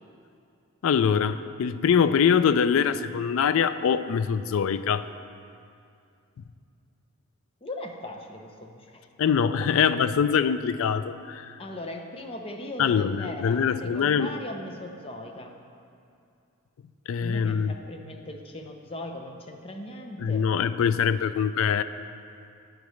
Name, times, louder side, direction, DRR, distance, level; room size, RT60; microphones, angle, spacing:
voice 1, 0.8-5.1 9.2-11.6 12.8-14.3 17.1-17.7 20.2-21.8, left 7 dB, 60° left, 13 dB, 0.3 m, -23 dB
voice 2, 7.6-9.0 9.6-9.7 11.6-15.6 17.2-20.5, left 1 dB, 25° left, 3 dB, 0.6 m, -38 dB
9.9 x 9.3 x 3.2 m, 2.5 s
head